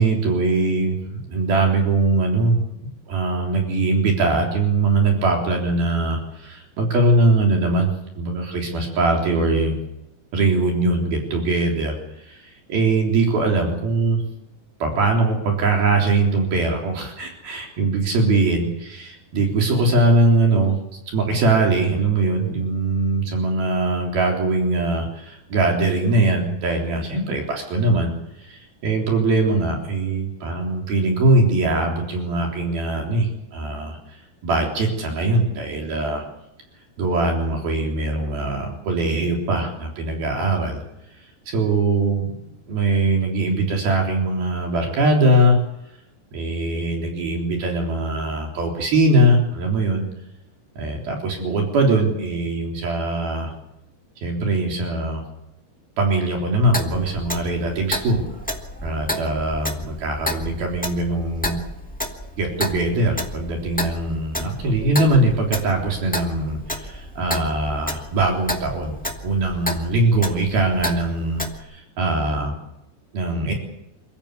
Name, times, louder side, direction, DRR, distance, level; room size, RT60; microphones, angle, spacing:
voice 1, 0.0-2.7 3.1-9.8 10.3-14.2 14.8-20.8 21.1-36.2 37.0-40.8 41.5-42.3 42.7-45.6 46.3-50.1 50.8-53.5 54.2-55.2 56.0-58.3 58.8-61.6 62.4-69.0 69.2-72.6 73.1-73.5, right 2 dB, 65° right, 1 dB, 5.4 m, -21 dB
Clock, 56.7-71.6, left 1 dB, 5° left, 0.8 m, -31 dB
28.5 x 15.0 x 8.5 m, 0.84 s
omnidirectional pair, 4.7 m